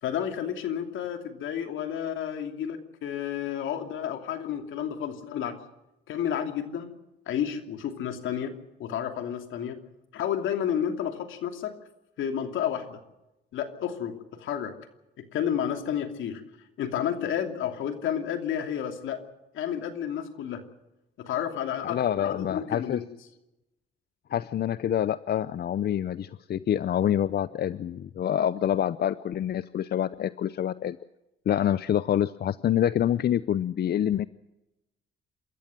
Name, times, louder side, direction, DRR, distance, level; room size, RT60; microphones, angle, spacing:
voice 1, 0.0-5.6 6.1-6.9 7.3-9.8 10.1-11.7 12.2-13.0 13.5-14.7 15.2-16.4 16.8-19.2 19.5-20.6 21.2-23.0, left 9 dB, 80° left, 6 dB, 2.8 m, -31 dB
voice 2, 21.8-23.0 24.3-31.0 31.5-34.3, left 10 dB, 55° left, 16 dB, 0.6 m, -26 dB
27.5 x 14.0 x 7.6 m, 0.95 s
cardioid pair, 90°, 20 cm